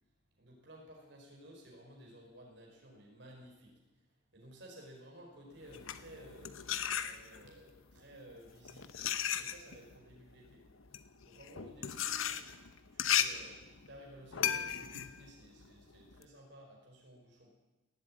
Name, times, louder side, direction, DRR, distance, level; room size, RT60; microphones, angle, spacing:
voice 1, 0.3-6.6 7.0-9.0 9.3-10.6 10.9-12.4 12.9-17.5, equal, 60° right, -1 dB, 5.0 m, -55 dB
sound 1, 5.6-7.6 8.4-16.3, left 9 dB, 90° left, 0.9 m, -36 dB
18.5 x 8.1 x 9.0 m, 1.1 s
head